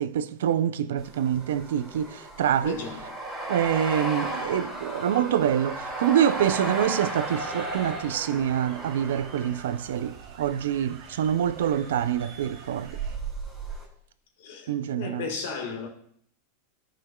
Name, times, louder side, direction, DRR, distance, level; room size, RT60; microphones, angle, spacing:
voice 1, 0.0-2.8 3.5-13.0 14.7-15.2, right 10 dB, 85° right, 0.4 m, -26 dB
sound 1, 1.0-10.5 11.4-11.9 12.2-13.8, right 2 dB, 5° left, 2.6 m, -35 dB
voice 2, 2.6-3.1 14.4-15.9, left 5 dB, 75° left, 1.6 m, -35 dB
sound 2, 5.4-13.2, right 6 dB, 60° right, 1.2 m, -47 dB
13.5 x 5.7 x 2.3 m
supercardioid pair, 145°, 0 cm